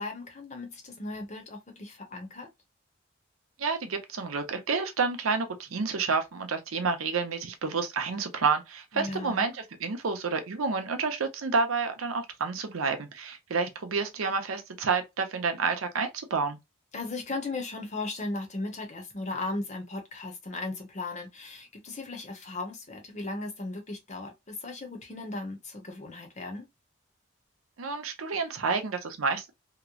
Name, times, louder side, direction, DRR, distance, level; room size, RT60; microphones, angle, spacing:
voice 1, 0.0-2.5 8.9-9.5 16.9-26.7, left 2 dB, 35° left, 0.7 m, -37 dB
voice 2, 3.6-16.6 27.8-29.5, right 4 dB, 90° right, 0.7 m, -29 dB
2.9 x 2.0 x 2.3 m
head